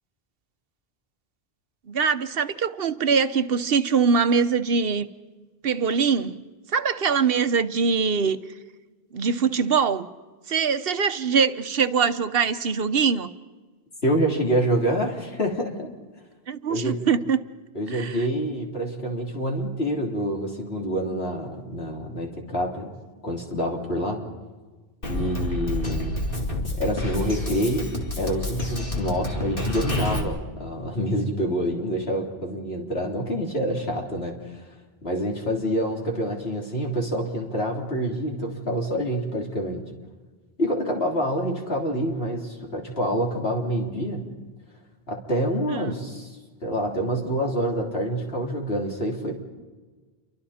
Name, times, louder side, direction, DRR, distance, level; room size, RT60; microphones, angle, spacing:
voice 1, 1.9-5.1 5.6-6.4 6.7-8.4 9.1-10.1 10.5-13.3 16.5-17.4 17.9-18.2 45.7-45.9, right 5 dB, 70° right, 1.1 m, -23 dB
voice 2, 14.0-15.9 16.7-17.0 17.8-22.9 23.2-24.2 25.0-26.3 26.8-27.9 28.2-34.7 35.0-39.9 40.6-44.3 45.1-46.3 46.6-49.4, equal, 75° left, 3.7 m, -27 dB
Drum kit, 25.0-30.2, left 1 dB, 60° left, 2.7 m, -29 dB
29.0 x 24.5 x 4.3 m
omnidirectional pair, 1.0 m